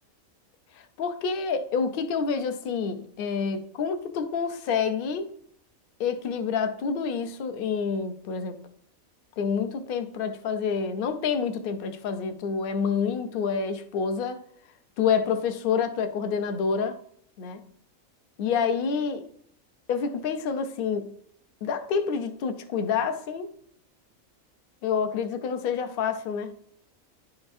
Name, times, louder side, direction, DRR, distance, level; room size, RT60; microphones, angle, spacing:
voice 1, 0.7-5.3 6.0-8.6 9.4-14.4 15.0-17.0 17.4-17.6 18.4-19.2 19.9-21.1 21.6-23.5 24.8-26.5, left 6 dB, 55° left, 0.6 m, -28 dB
11.0 x 4.1 x 2.6 m
omnidirectional pair, 1.5 m